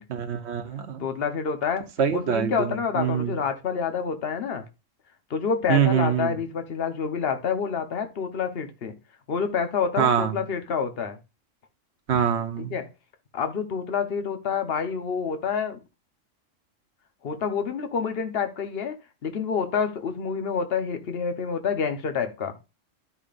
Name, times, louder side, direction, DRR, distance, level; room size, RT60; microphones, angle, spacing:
voice 1, 0.1-1.1 2.0-3.4 5.7-6.4 10.0-10.4 12.1-12.8, right 8 dB, 60° right, 1.2 m, -24 dB
voice 2, 1.0-1.9 2.1-4.7 5.3-9.0 9.3-11.2 12.6-12.9 13.3-15.8 17.2-19.0 19.2-22.5, left 6 dB, 50° left, 1.2 m, -28 dB
12.5 x 5.1 x 2.5 m
omnidirectional pair, 1.3 m